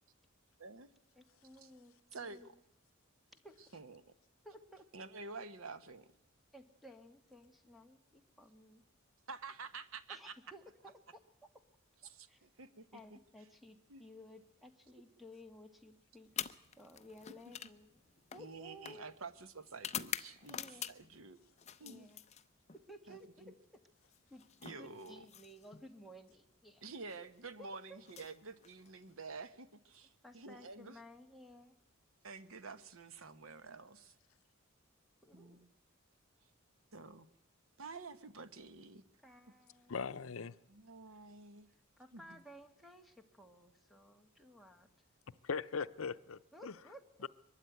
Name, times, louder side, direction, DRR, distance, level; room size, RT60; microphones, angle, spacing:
voice 1, 0.6-0.9 1.6-1.7 2.1-2.5 3.7-4.1 4.9-6.1 9.3-10.3 12.0-13.0 13.9-14.0 18.4-21.4 21.8-22.1 23.1-23.5 24.6-25.3 26.8-31.0 32.2-34.1 35.3-35.7 36.9-37.3 37.8-39.0 40.7-41.7 42.1-42.4, right 4 dB, 80° right, 1.1 m, -49 dB
voice 2, 1.2-2.6 3.4-3.6 4.4-4.9 6.5-8.8 10.1-11.2 12.3-12.4 12.9-16.5 16.8-19.1 20.5-21.0 21.8-22.2 22.7-23.5 24.3-24.4 24.8-26.8 27.6-28.0 30.2-31.8 35.2-35.7 39.2-40.0 42.0-44.9 46.5-47.3, equal, ahead, 1.6 m, -56 dB
sound 1, 16.3-21.2 21.6-22.8 24.0-25.9 26.9-27.2 28.0-29.1, left 9 dB, 35° left, 0.7 m, -46 dB
voice 3, 39.9-40.6 45.4-46.7 47.2-47.3, left 5 dB, 80° left, 0.7 m, -40 dB
23.0 x 12.5 x 9.2 m
head